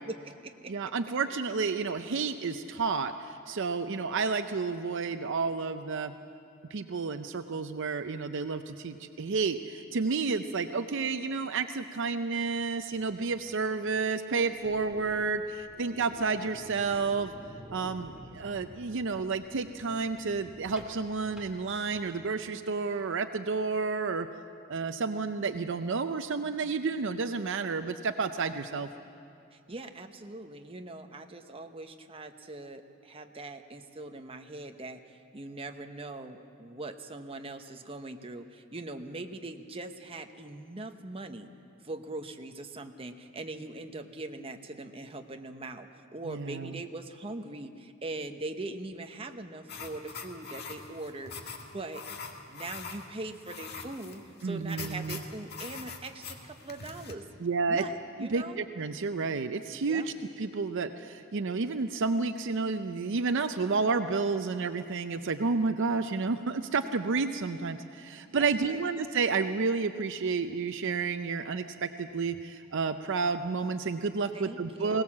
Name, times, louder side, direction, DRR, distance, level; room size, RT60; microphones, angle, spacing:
voice 1, 0.0-0.7 29.5-41.5 41.8-52.0 52.5-57.2 57.7-58.6 59.8-60.1 68.4-68.8 74.3-75.0, right 2 dB, 25° right, 6 dB, 0.9 m, -41 dB
voice 2, 0.7-6.1 6.7-17.3 17.7-24.3 24.7-28.9 46.2-46.8 54.4-55.2 57.4-57.8 58.2-75.0, right 4 dB, 60° right, 9 dB, 0.6 m, -31 dB
sound 1, 14.4-22.3, equal, 5° right, 2.3 m, -51 dB
sound 2, 49.7-57.1, left 5 dB, 50° left, 1.6 m, -43 dB
21.0 x 18.0 x 7.3 m, 2.6 s
head